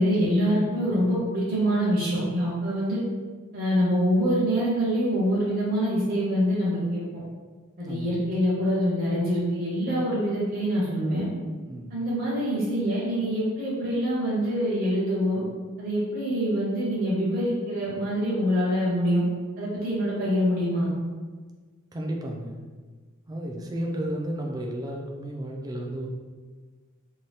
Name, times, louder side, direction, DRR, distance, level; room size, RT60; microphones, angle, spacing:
voice 1, 0.0-3.0 3.5-7.0 7.8-11.3 11.9-15.4 15.8-19.2 19.6-20.9, equal, 45° right, -8 dB, 0.7 m, -25 dB
voice 2, 7.8-8.2 11.7-12.0 21.9-22.6 23.3-26.1, right 1 dB, 15° right, 0 dB, 0.3 m, -33 dB
2.7 x 2.2 x 3.2 m, 1.4 s
head